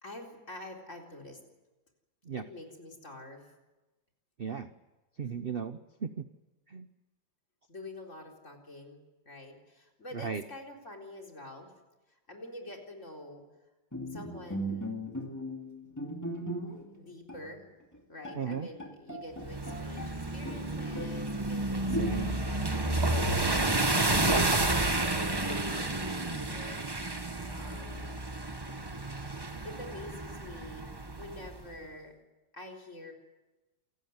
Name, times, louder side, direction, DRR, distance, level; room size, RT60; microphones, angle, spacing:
voice 1, 0.0-1.4 2.5-3.4 7.7-9.0 9.2-11.7 12.1-13.4 14.1-15.0 17.0-17.6 18.1-24.3 24.6-26.8 27.5-28.2 29.6-30.9 31.2-32.1 32.5-33.1, left 1 dB, 40° left, 1 dB, 4.4 m, -47 dB
voice 2, 4.4-4.7 5.2-6.3 6.7-6.9 10.1-10.4 18.3-18.7 21.9-22.5, right 6 dB, 45° right, 10 dB, 0.8 m, -36 dB
Bowed string instrument, 13.9-17.0 17.3-17.5 17.9-18.0 18.2-20.2 20.5-21.3 21.9-22.5, equal, 10° left, 2.6 m, -38 dB
sound 1, 19.4-31.5, right 2 dB, 15° right, 1.2 m, -31 dB
28.0 x 16.0 x 9.6 m, 1.1 s
omnidirectional pair, 2.1 m